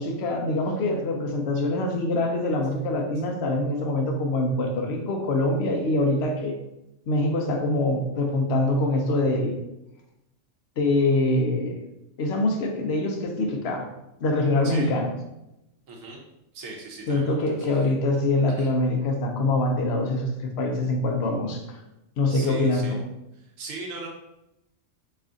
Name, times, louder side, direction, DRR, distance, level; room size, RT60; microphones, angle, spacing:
voice 1, 0.0-6.5 7.1-9.6 10.8-11.8 12.2-13.9 14.2-15.1 17.1-21.8 22.2-23.0, left 2 dB, 60° left, 2 dB, 0.8 m, -24 dB
voice 2, 15.9-16.2 16.5-17.9 18.6-18.7 22.3-23.0 23.4-24.1, right 3 dB, 85° right, -1 dB, 1.2 m, -39 dB
3.2 x 2.4 x 3.7 m, 0.90 s
omnidirectional pair, 1.3 m